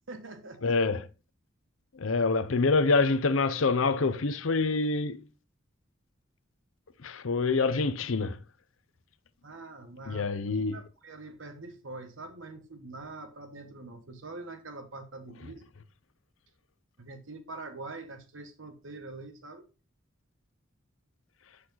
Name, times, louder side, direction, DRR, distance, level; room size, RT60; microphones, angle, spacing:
voice 1, 0.1-0.8 9.4-10.3 10.7-15.6 17.0-19.7, right 3 dB, 75° right, 1.6 m, -44 dB
voice 2, 0.6-1.0 1.9-5.2 7.0-8.4 10.1-10.8, left 3 dB, 80° left, 0.7 m, -26 dB
7.9 x 6.5 x 3.9 m
head